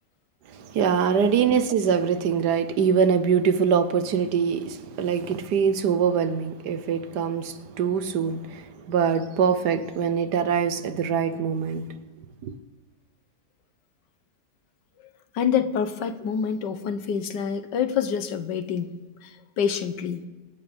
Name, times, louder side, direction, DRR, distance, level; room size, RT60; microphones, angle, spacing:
voice 1, 0.5-12.0 12.4-12.5, right 7 dB, 70° right, 1.5 m, -23 dB
voice 2, 15.3-18.9 19.2-20.2, left 7 dB, 80° left, 1.6 m, -27 dB
25.5 x 9.4 x 5.1 m
omnidirectional pair, 1.9 m